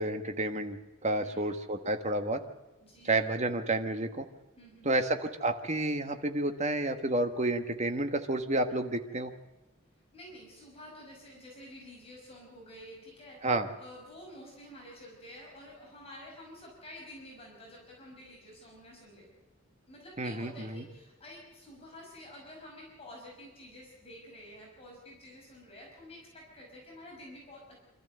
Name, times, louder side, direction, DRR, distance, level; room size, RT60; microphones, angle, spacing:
voice 1, 0.0-2.4 3.1-4.2 4.8-9.3 13.4-13.7 20.2-20.8, right 2 dB, 35° right, 7 dB, 1.4 m, -30 dB
voice 2, 1.2-1.5 2.8-3.3 4.6-5.0 10.1-19.3 19.9-27.8, left 1 dB, 30° left, -2 dB, 5.7 m, -50 dB
26.0 x 13.5 x 7.8 m, 1.1 s
head